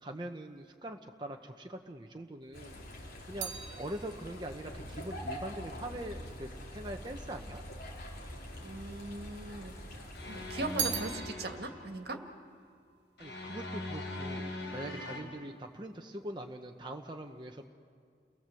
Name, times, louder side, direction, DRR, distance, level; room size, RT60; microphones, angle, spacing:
voice 1, 0.0-2.8 3.2-7.6 13.2-17.7, right 1 dB, 25° right, 3 dB, 1.0 m, -43 dB
sound 1, 2.4-6.9 7.6-8.4 8.7-9.9 10.2-13.7 14.0-14.5, right 7 dB, 80° right, 1.6 m, -42 dB
sound 2, 2.5-11.2, equal, 60° left, 4.1 m, -45 dB
voice 2, 8.6-12.2 14.8-15.0, right 2 dB, 65° right, 5 dB, 1.9 m, -40 dB
sound 3, 10.1-11.8 13.2-15.2, left 2 dB, 80° left, 5.0 m, -41 dB
30.0 x 19.5 x 7.7 m, 2.1 s
head